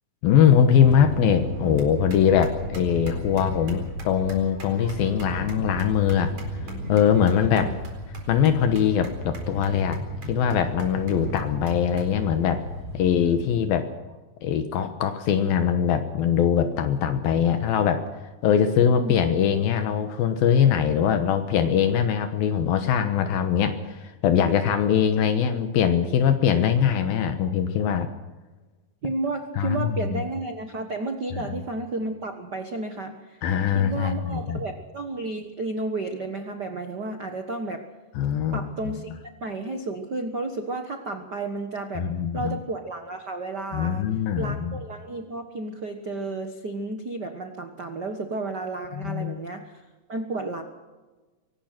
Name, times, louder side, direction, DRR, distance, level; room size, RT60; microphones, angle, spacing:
voice 1, 0.2-6.3 6.9-7.7 8.3-10.0 10.3-12.6 12.9-13.9 14.4-18.1 18.4-28.1 29.6-30.2 31.4-31.5 33.4-34.6 38.2-38.7 41.9-42.6 43.7-44.8 48.9-49.3, left 8 dB, 80° left, 7 dB, 3.0 m, -22 dB
sound 1, 0.8-13.5, equal, 45° right, 5.3 m, -34 dB
voice 2, 29.0-33.4 33.7-37.8 38.5-39.1 39.4-42.1 42.3-44.0 44.4-49.8 50.1-50.6, right 2 dB, 65° right, 6 dB, 1.0 m, -32 dB
24.5 x 19.0 x 5.9 m, 1.2 s
omnidirectional pair, 4.3 m